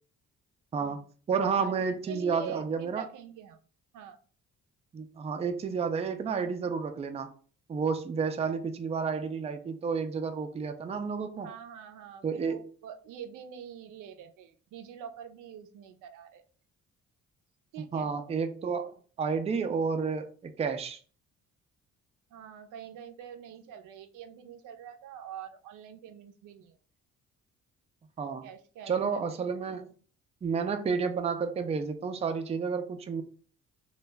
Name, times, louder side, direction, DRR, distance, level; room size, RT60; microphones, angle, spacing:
voice 1, 0.7-1.0 1.3-3.1 4.9-7.3 7.7-11.5 12.2-12.6 17.9-21.0 28.2-28.5 28.9-29.9 30.4-33.2, right 5 dB, 20° right, 7 dB, 0.3 m, -31 dB
voice 2, 2.1-3.6 3.9-4.2 11.4-16.4 17.7-18.1 22.3-26.7 28.4-29.2 29.6-29.7, right 8 dB, 85° right, 7 dB, 0.5 m, -45 dB
2.3 x 2.0 x 3.3 m, 0.41 s
cardioid pair, 90°, 30 cm